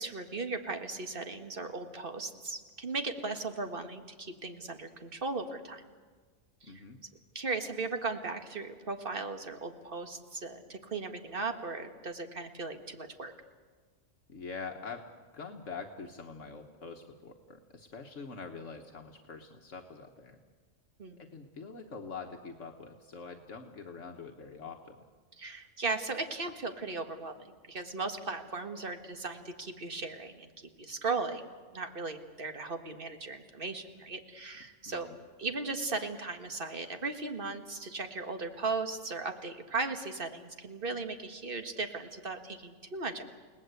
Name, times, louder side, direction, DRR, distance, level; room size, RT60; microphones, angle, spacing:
voice 1, 0.0-5.8 6.6-6.8 7.4-13.3 21.0-21.2 25.4-30.5 30.8-31.5 31.7-35.1 35.4-43.2, right 3 dB, 45° right, 6 dB, 1.9 m, -37 dB
voice 2, 6.6-7.0 14.3-15.1 15.3-20.4 21.2-25.0 34.9-35.2, left 4 dB, 70° left, 4 dB, 1.6 m, -44 dB
29.5 x 19.0 x 8.1 m, 1.5 s
omnidirectional pair, 1.3 m